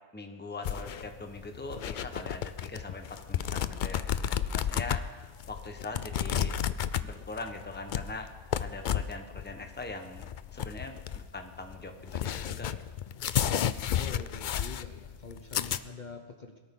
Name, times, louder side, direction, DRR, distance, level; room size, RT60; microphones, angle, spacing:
voice 1, 0.1-6.6 7.0-8.3 8.6-12.7, left 3 dB, 10° left, 5 dB, 1.0 m, -42 dB
sound 1, 0.6-15.8, left 9 dB, 60° left, 0.5 m, -32 dB
voice 2, 14.0-16.6, left 5 dB, 45° left, 4 dB, 1.0 m, -45 dB
22.0 x 13.0 x 3.8 m, 1.5 s
omnidirectional pair, 1.2 m